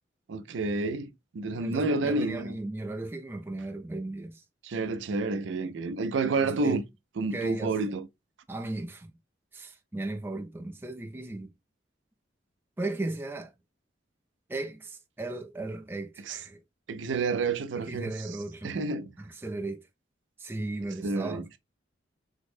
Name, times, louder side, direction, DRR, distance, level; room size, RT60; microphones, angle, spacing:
voice 1, 0.3-2.5 4.6-6.8 7.2-8.1 16.3-16.4 16.9-18.1 18.6-19.1 21.0-21.4, right 3 dB, 80° right, 0.4 m, -29 dB
voice 2, 1.6-4.4 6.4-6.8 7.3-7.8 8.5-9.1 9.5-11.5 12.8-13.5 14.5-16.6 17.7-18.7 19.2-19.9 20.4-21.5, right 2 dB, 10° right, 0.3 m, -36 dB
3.6 x 2.0 x 3.4 m
head